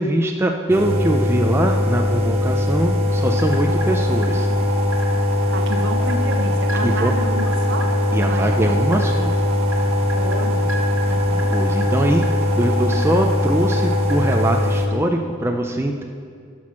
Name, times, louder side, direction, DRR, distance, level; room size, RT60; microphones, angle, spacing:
voice 1, 0.0-4.5 6.8-7.1 8.1-9.3 11.5-16.0, right 1 dB, 10° right, 2 dB, 0.4 m, -22 dB
sound 1, 0.7-14.9, left 1 dB, 30° right, 1.0 m, -20 dB
sound 2, 3.1-14.4, right 2 dB, 85° right, 1.6 m, -30 dB
voice 2, 5.5-8.7 10.1-11.5, right 1 dB, 60° right, 4 dB, 1.0 m, -31 dB
11.5 x 6.2 x 6.1 m, 2.2 s
head